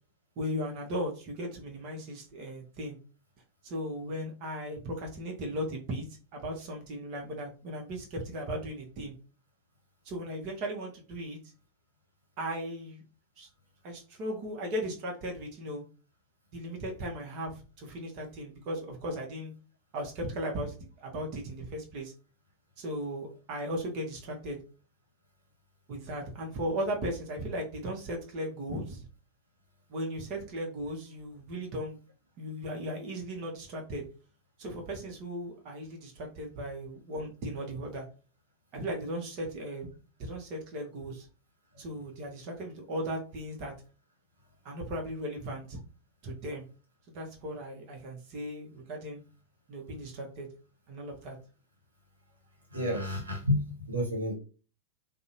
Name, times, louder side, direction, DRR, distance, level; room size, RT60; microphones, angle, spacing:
voice 1, 0.4-3.0 3.6-6.1 6.3-9.1 10.0-11.4 12.4-13.0 13.4-13.5 13.8-15.8 16.5-19.5 19.9-20.8 21.0-22.1 22.8-24.6 25.9-29.0 29.9-32.0 32.4-34.0 34.6-38.0 38.7-39.9 40.2-41.3 41.8-43.7 44.6-45.8 46.2-46.7 47.1-49.2 49.7-50.5 50.9-51.4, equal, 40° right, 0 dB, 0.7 m, -37 dB
voice 2, 52.7-54.3, left 1 dB, 75° right, 0 dB, 0.8 m, -30 dB
2.6 x 2.0 x 2.7 m, 0.36 s
figure-of-eight pair, 90°, 0 cm